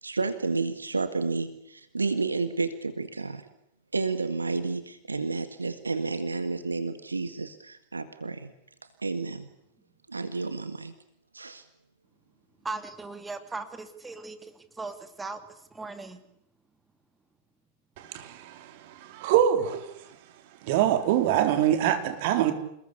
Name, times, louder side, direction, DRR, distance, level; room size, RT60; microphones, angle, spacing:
voice 1, 0.0-3.5 3.9-8.5 9.0-9.5 10.1-10.9 11.3-11.6, right 3 dB, 80° right, 1.8 m, -31 dB
voice 2, 12.6-15.4 15.7-16.2, right 3 dB, 10° right, 2.9 m, -38 dB
voice 3, 18.0-18.7 19.0-19.8 20.7-22.5, right 10 dB, 50° right, 4.4 m, -24 dB
29.0 x 20.5 x 8.4 m
figure-of-eight pair, 90°, 0 cm